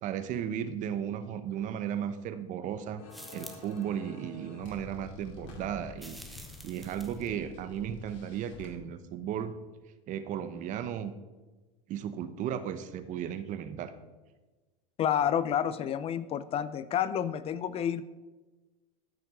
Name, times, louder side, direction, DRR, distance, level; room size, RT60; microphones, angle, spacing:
voice 1, 0.0-3.0 3.3-9.5 10.1-11.1 11.9-13.9, right 9 dB, 45° right, 11 dB, 0.9 m, -35 dB
sound 1, 3.0-8.7, left 3 dB, 75° left, 2.6 m, -49 dB
sound 2, 3.1-3.8 6.0-7.3, equal, ahead, 1.1 m, -48 dB
voice 2, 15.0-18.1, left 9 dB, 35° left, 15 dB, 0.5 m, -29 dB
13.5 x 5.8 x 4.9 m, 1.2 s
supercardioid pair, 115°, 17 cm